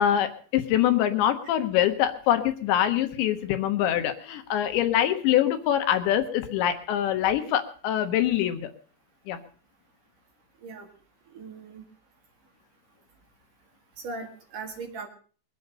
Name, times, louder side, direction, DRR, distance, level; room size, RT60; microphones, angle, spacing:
voice 1, 0.0-8.7 9.3-9.4, left 11 dB, 75° left, 8 dB, 3.5 m, -24 dB
voice 2, 11.3-11.8 14.0-15.1, right 4 dB, 55° right, 4 dB, 3.1 m, -38 dB
22.5 x 8.3 x 6.7 m, 0.42 s
omnidirectional pair, 5.3 m